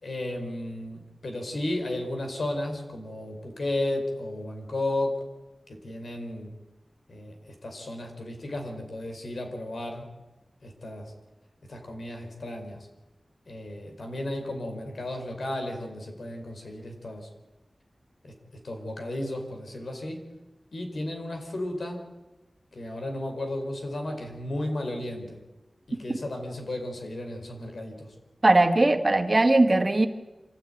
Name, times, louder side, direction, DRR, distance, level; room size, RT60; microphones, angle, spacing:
voice 1, 0.0-5.2 5.7-6.6 7.1-10.1 10.6-11.1 11.7-12.9 13.5-17.3 18.2-18.3 18.6-20.3 20.7-22.1 22.7-25.4 25.9-28.1, left 1 dB, 75° left, 4 dB, 4.9 m, -34 dB
voice 2, 28.4-30.1, right 2 dB, 35° right, 6 dB, 1.9 m, -19 dB
25.5 x 15.5 x 9.3 m, 1.1 s
wide cardioid pair, 75°, 0 cm